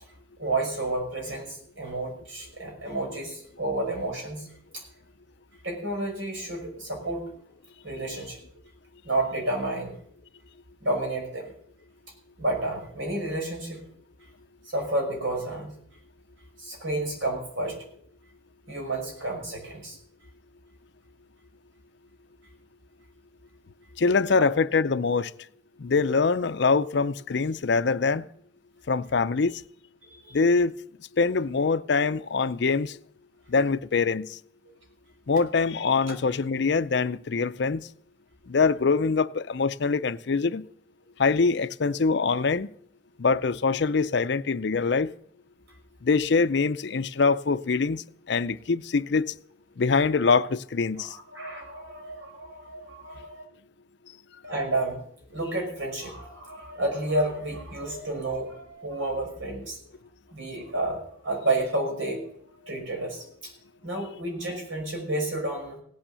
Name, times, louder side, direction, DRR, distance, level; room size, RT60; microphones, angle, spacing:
voice 1, 0.4-4.5 4.7-4.8 5.6-7.3 7.8-8.4 9.0-10.0 10.8-11.5 12.4-13.8 14.6-15.7 16.6-17.8 18.7-20.0 30.2-30.3 36.1-36.2 51.0-53.4 54.4-55.0 55.3-59.8 60.3-62.3 62.6-63.5 63.8-65.8, right 2 dB, 80° right, 5.7 m, -30 dB
voice 2, 24.0-25.3 25.8-28.3 28.9-29.6 30.3-30.7 31.2-33.0 33.5-34.4 35.3-37.9 38.5-40.7 41.2-42.7 43.2-45.1 46.0-49.3 49.8-51.1, left 4 dB, 60° left, 0.5 m, -24 dB
17.0 x 8.9 x 6.8 m
head